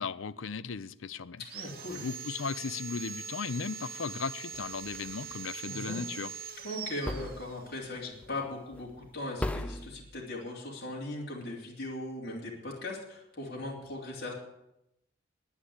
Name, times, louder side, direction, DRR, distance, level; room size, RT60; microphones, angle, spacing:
voice 1, 0.0-6.3, left 5 dB, 85° left, 0.6 m, -37 dB
Sawing, 1.4-7.9, right 6 dB, 50° right, 0.8 m, -42 dB
voice 2, 1.5-2.0 5.7-6.0 6.6-14.3, left 1 dB, 55° left, 3.2 m, -39 dB
sound 1, 4.5-5.4 7.1-7.9 8.2-8.5 8.7-9.1 9.4-10.0, left 1 dB, 5° left, 0.4 m, -37 dB
10.5 x 10.0 x 8.0 m
head